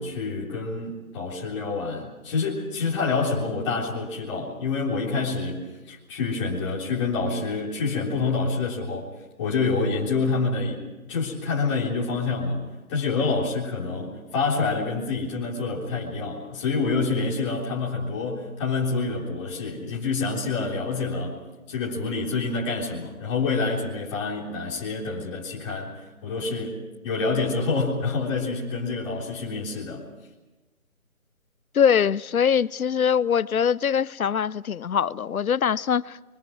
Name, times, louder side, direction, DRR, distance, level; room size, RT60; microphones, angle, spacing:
voice 1, 0.0-9.1 9.4-10.8 11.1-12.6 12.9-21.4 21.7-26.8 27.0-30.0, left 4 dB, 20° left, 3.7 m, -27 dB
voice 2, 31.7-36.2, left 7 dB, 75° left, 0.7 m, -22 dB
29.5 x 24.0 x 4.7 m
figure-of-eight pair, 160°, 43 cm